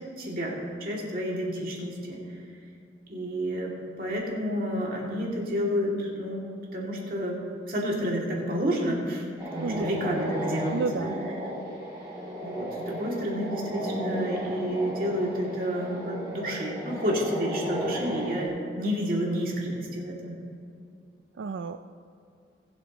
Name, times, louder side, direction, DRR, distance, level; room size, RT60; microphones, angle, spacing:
voice 1, 0.2-2.2 3.1-3.7 4.0-9.3 9.5-11.1 12.4-20.4, equal, 50° right, -3 dB, 2.5 m, -30 dB
sound 1, 9.4-18.5, right 1 dB, 20° right, 2.7 m, -35 dB
voice 2, 9.6-10.0 10.7-11.2 21.3-21.8, right 4 dB, 85° right, 8 dB, 0.4 m, -31 dB
21.0 x 7.9 x 3.0 m, 2.4 s
head